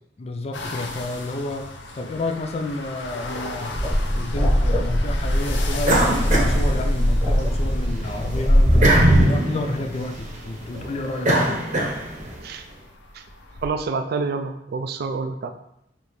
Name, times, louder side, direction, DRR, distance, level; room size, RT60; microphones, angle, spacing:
voice 1, 0.2-3.8 4.1-11.6, left 2 dB, 35° left, 5 dB, 0.3 m, -30 dB
sound 1, 0.5-13.7, left 1 dB, 75° left, 0.6 m, -35 dB
sound 2, 3.7-9.2, equal, 10° left, 1.5 m, -21 dB
sound 3, 5.8-7.4 7.8-12.4, right 1 dB, 40° right, 0.8 m, -21 dB
voice 2, 13.6-15.5, right 4 dB, 60° right, 7 dB, 0.3 m, -27 dB
5.0 x 2.8 x 3.1 m, 0.77 s
head